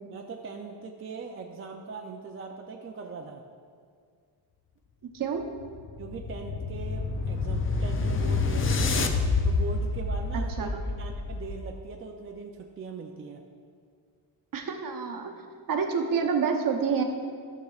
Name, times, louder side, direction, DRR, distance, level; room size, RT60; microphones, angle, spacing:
voice 1, 0.1-3.4 6.0-9.1 9.4-13.4, right 4 dB, 30° right, 2 dB, 0.4 m, -40 dB
sound 1, 5.4-11.8, left 3 dB, 30° left, 0.4 m, -28 dB
voice 2, 10.3-10.8 14.5-15.3 15.7-17.0, right 6 dB, 45° right, 3 dB, 0.8 m, -28 dB
13.5 x 6.5 x 2.4 m, 2.1 s
wide cardioid pair, 150°, 44 cm